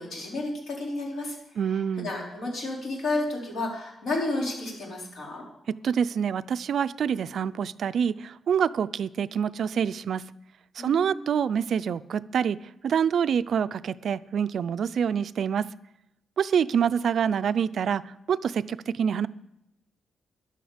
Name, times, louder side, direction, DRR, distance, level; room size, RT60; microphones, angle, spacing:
voice 1, 0.0-1.4 1.7-5.4 10.8-11.3, left 2 dB, 70° left, -2 dB, 4.3 m, -32 dB
voice 2, 1.6-2.1 5.8-10.2 10.8-12.6 12.8-15.7 16.4-18.0 18.3-19.3, right 7 dB, 55° right, 15 dB, 0.4 m, -26 dB
14.0 x 11.0 x 5.0 m, 0.82 s
wide cardioid pair, 175°, 0 cm